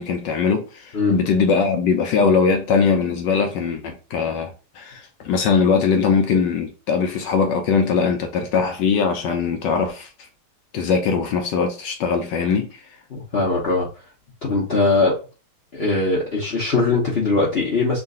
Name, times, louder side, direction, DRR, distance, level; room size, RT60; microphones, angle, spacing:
voice 1, 0.0-4.5 4.8-10.1 10.7-12.8, left 5 dB, 75° left, 1.0 m, -21 dB
voice 2, 13.1-13.9 14.4-15.1 15.7-18.0, left 3 dB, 55° left, 0.6 m, -20 dB
3.7 x 2.4 x 3.7 m
omnidirectional pair, 2.4 m